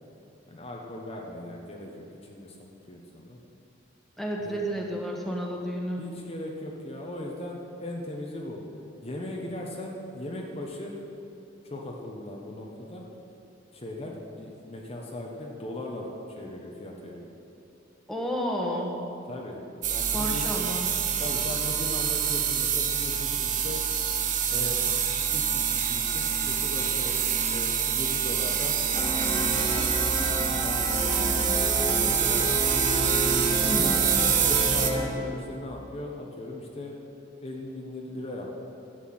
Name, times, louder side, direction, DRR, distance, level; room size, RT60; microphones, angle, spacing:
voice 1, 0.5-2.6 2.9-3.4 4.4-4.6 6.0-8.6 9.0-10.9 11.6-13.0 13.7-16.1 16.4-17.3 19.3-19.6 19.9-20.5 21.2-23.8 24.5-24.8 25.3-28.7 29.3-32.6 33.6-36.9 37.4-38.5, left 1 dB, 35° left, -1 dB, 1.2 m, -38 dB
voice 2, 4.2-6.0 18.1-18.9 20.1-20.9 33.7-34.1, equal, ahead, -1 dB, 1.6 m, -31 dB
sound 1, 19.8-34.9, right 8 dB, 45° right, 1.0 m, -26 dB
sound 2, 28.9-35.1, equal, 15° left, 1.9 m, -30 dB
12.0 x 8.2 x 8.7 m, 2.8 s
head